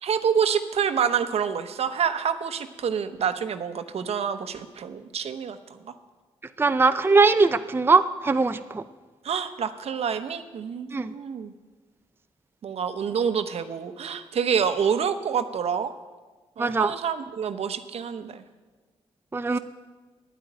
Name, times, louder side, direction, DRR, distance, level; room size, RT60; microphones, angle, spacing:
voice 1, 0.0-5.9 9.2-11.5 12.6-15.9 16.6-18.4, right 7 dB, 65° right, 10 dB, 0.9 m, -27 dB
voice 2, 6.6-8.8 10.9-11.1 16.6-16.9 19.3-19.6, right 4 dB, 20° right, 10 dB, 0.5 m, -21 dB
10.5 x 8.6 x 9.3 m, 1.3 s
cardioid pair, 65°, 11 cm